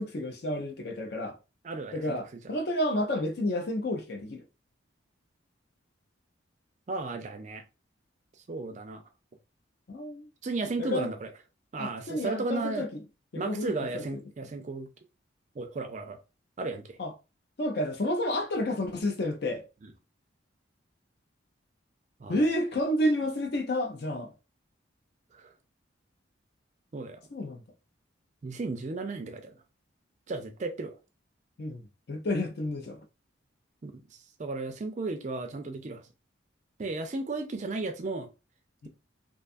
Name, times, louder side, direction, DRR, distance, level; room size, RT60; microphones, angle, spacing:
voice 1, 0.0-1.4 1.9-4.4 9.9-10.3 10.8-11.1 11.8-12.9 13.3-14.1 17.0-17.1 17.6-19.6 22.3-24.3 27.3-27.6 31.6-33.0 38.8-38.9, left 1 dB, 55° left, 0.5 m, -30 dB
voice 2, 1.6-2.2 6.9-7.6 8.5-9.0 10.4-11.3 11.7-12.9 13.4-14.9 15.6-16.2 16.6-17.0 19.8-19.9 22.2-22.5 25.3-25.5 26.9-27.2 28.4-29.6 30.3-30.9 33.8-34.0 34.4-36.0 36.8-38.3, right 3 dB, 35° right, 0.4 m, -34 dB
2.5 x 2.3 x 2.5 m
head